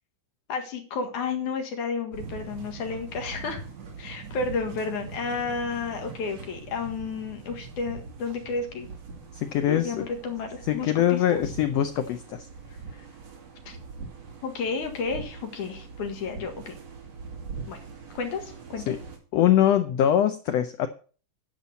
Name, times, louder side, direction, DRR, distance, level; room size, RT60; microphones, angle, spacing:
voice 1, 0.5-3.6 4.0-8.9 9.7-11.4 13.7-13.8 14.4-16.7 17.7-17.8 18.1-18.8, left 4 dB, 70° left, 4 dB, 3.1 m, -32 dB
sound 1, 2.1-19.2, right 4 dB, 55° right, 3.3 m, -42 dB
voice 2, 9.3-10.1 10.6-12.5 18.9-19.0 19.3-20.9, left 11 dB, 85° left, 9 dB, 1.4 m, -23 dB
10.0 x 5.8 x 6.9 m, 0.39 s
omnidirectional pair, 3.7 m